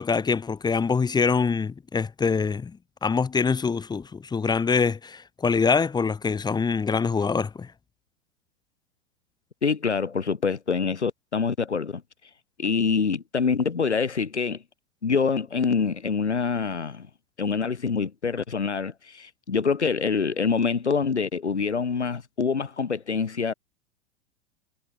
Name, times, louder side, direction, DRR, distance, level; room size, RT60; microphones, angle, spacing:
voice 1, 0.0-7.7, left 5 dB, 10° left, 1.4 m, -24 dB
voice 2, 9.6-12.0 12.6-14.6 15.0-17.1 17.4-23.5, left 5 dB, 85° left, 3.7 m, -25 dB
figure-of-eight pair, 100°, 33 cm